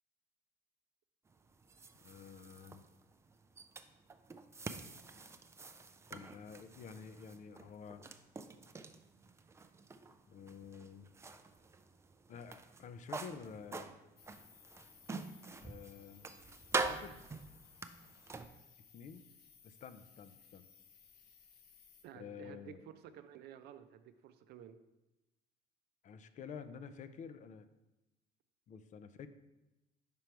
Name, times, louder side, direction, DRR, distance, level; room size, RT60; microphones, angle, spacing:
sound 1, 1.3-18.5, right 3 dB, 15° right, 0.3 m, -45 dB
voice 1, 2.0-2.8 6.1-8.0 10.3-11.1 12.3-13.9 15.6-16.3 16.9-17.2 18.9-19.2 19.6-20.7 22.1-22.8 26.0-27.7 28.7-29.3, left 6 dB, 50° left, 11 dB, 0.4 m, -50 dB
sound 2, 14.2-22.0, left 7 dB, 65° left, 0.8 m, -62 dB
voice 2, 22.0-22.8 23.1-24.8, right 10 dB, 75° right, 10 dB, 0.5 m, -53 dB
5.2 x 4.6 x 4.4 m, 0.98 s
cardioid pair, 110°, 17 cm